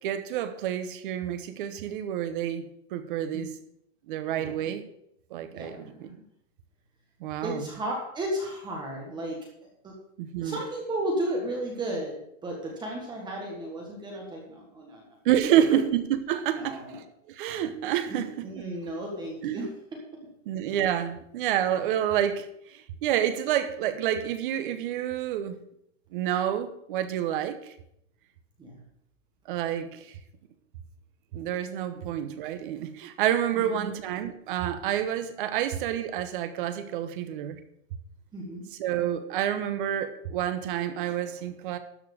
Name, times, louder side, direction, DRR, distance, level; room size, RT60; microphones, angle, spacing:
voice 1, 0.0-3.5 4.1-4.8 5.3-6.1 7.2-7.7 10.2-10.6 15.2-16.8 17.3-18.5 19.4-19.6 20.5-22.5 22.7-25.6 26.1-27.6 29.5-30.0 31.3-37.6 38.8-41.8, right 10 dB, 40° right, 10 dB, 1.1 m, -28 dB
voice 2, 4.4-4.7 5.5-6.1 7.4-9.4 9.8-9.9 10.4-15.2 15.4-15.8 16.5-17.0 18.1-19.7 28.6-28.8 31.9-32.0 33.5-33.9 38.3-38.6, right 1 dB, 10° right, -1 dB, 1.5 m, -34 dB
13.0 x 4.7 x 8.5 m, 0.74 s
supercardioid pair, 175°, 40 cm